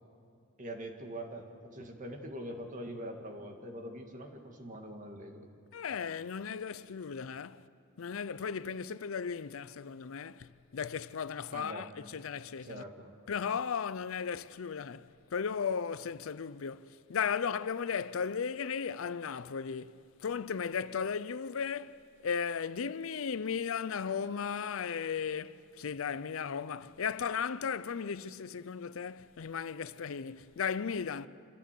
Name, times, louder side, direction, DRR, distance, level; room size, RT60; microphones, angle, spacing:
voice 1, 0.6-5.5 11.5-11.9 12.6-13.1, right 1 dB, 40° right, 2.0 m, -43 dB
voice 2, 5.7-7.6 8.0-12.8 13.3-31.3, left 6 dB, 70° left, 0.5 m, -36 dB
26.0 x 15.0 x 8.3 m
head